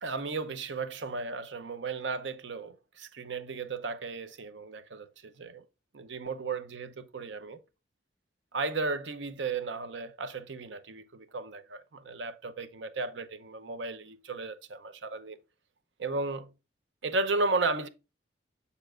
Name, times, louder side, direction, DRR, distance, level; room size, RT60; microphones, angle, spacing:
voice 1, 0.0-5.6 5.9-7.6 8.5-15.4 16.0-16.4 17.0-17.9, right 3 dB, 80° right, 0.7 m, -34 dB
6.9 x 6.8 x 2.4 m
head